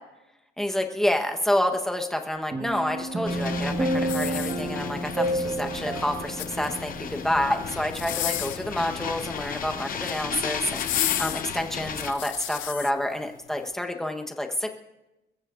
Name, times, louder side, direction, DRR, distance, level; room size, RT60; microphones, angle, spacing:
voice 1, 0.6-14.7, left 1 dB, ahead, 3 dB, 1.1 m, -28 dB
sound 1, 2.5-8.0 8.3-8.4, right 1 dB, 20° right, 1.2 m, -30 dB
sound 2, 3.2-12.1, left 7 dB, 45° left, 0.9 m, -35 dB
sound 3, 4.0-5.0 6.1-6.9 7.9-8.7 9.8-10.2 10.7-12.9 13.5-13.6, left 14 dB, 75° left, 0.5 m, -32 dB
29.5 x 15.0 x 2.6 m, 0.99 s
cardioid pair, 170°, 20 cm